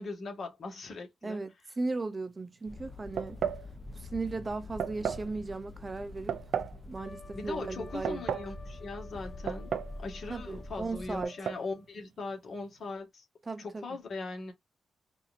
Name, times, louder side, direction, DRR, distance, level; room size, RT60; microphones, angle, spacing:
voice 1, 0.0-1.4 7.3-13.2 13.6-14.5, left 3 dB, 55° left, 1.7 m, -40 dB
voice 2, 1.2-3.4 3.9-6.4 6.9-8.2 10.3-11.3 13.5-13.9, right 3 dB, 30° right, 0.6 m, -36 dB
sound 1, 2.7-11.2, left 2 dB, 15° left, 0.7 m, -45 dB
sound 2, 3.2-3.7 4.8-5.3 6.3-6.8 7.8-8.5 9.5-10.0 10.2-10.3 11.2-11.6, right 8 dB, 75° right, 0.4 m, -33 dB
Trumpet, 6.9-11.9, left 5 dB, 80° left, 1.6 m, -53 dB
4.1 x 2.7 x 2.6 m
cardioid pair, 90°, 0 cm